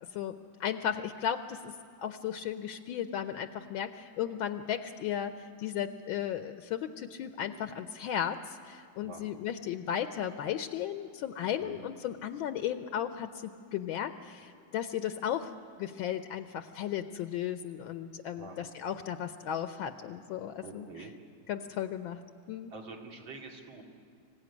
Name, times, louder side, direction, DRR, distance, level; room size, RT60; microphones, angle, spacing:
voice 1, 0.6-1.7 2.0-20.9 21.5-22.2 22.5-22.7, left 9 dB, 75° left, 9 dB, 1.5 m, -35 dB
voice 2, 18.4-18.7 20.6-21.1 22.7-23.8, right 3 dB, 65° right, 1 dB, 3.1 m, -46 dB
25.5 x 16.0 x 9.6 m, 2.3 s
omnidirectional pair, 2.2 m